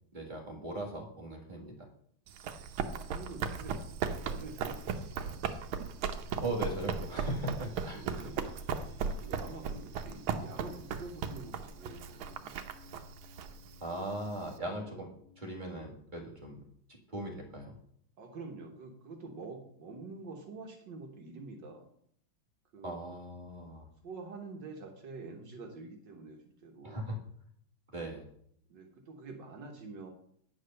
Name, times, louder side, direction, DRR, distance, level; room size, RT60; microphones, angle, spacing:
voice 1, 0.1-1.8 6.4-8.4 13.8-16.6 17.1-17.7 22.8-23.9 26.8-27.2 27.9-28.3, right 1 dB, 25° right, -1 dB, 1.8 m, -39 dB
Run, 2.3-14.5, right 6 dB, 85° right, 1.6 m, -37 dB
voice 2, 2.8-5.4 7.9-8.4 9.2-12.6 18.2-21.9 22.7-23.0 24.0-27.0 28.7-30.1, right 3 dB, 65° right, 2 dB, 1.8 m, -47 dB
sound 1, 7.6-17.0, left 1 dB, 35° left, 2.1 m, -60 dB
9.5 x 4.9 x 6.4 m, 0.67 s
omnidirectional pair, 2.2 m